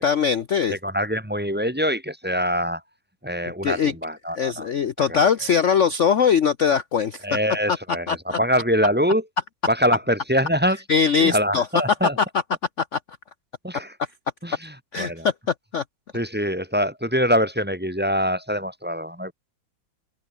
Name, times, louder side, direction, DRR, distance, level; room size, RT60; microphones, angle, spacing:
voice 1, 0.0-0.8 3.6-3.9 4.4-7.2 8.1-8.4 10.9-11.6 12.9-13.0 14.9-15.3 15.7-15.8, left 6 dB, 55° left, 0.9 m, -21 dB
voice 2, 0.7-2.8 3.2-4.7 5.0-5.3 7.2-9.3 9.7-10.8 11.2-12.2 13.6-14.0 14.4-15.3 16.1-19.3, equal, 5° right, 2.4 m, -24 dB
open air
omnidirectional pair, 2.1 m